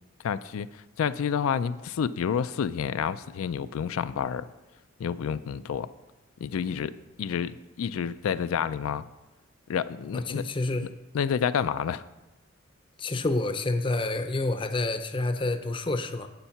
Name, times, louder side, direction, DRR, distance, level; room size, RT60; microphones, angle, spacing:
voice 1, 0.2-0.7 1.0-4.5 5.0-5.9 6.4-6.9 7.2-9.1 9.7-10.4 10.8-10.9 11.1-12.0, left 7 dB, 85° left, 13 dB, 0.3 m, -29 dB
voice 2, 10.1-10.9 13.0-16.3, left 2 dB, 25° left, 9 dB, 0.5 m, -28 dB
7.9 x 7.1 x 5.7 m, 1.0 s
head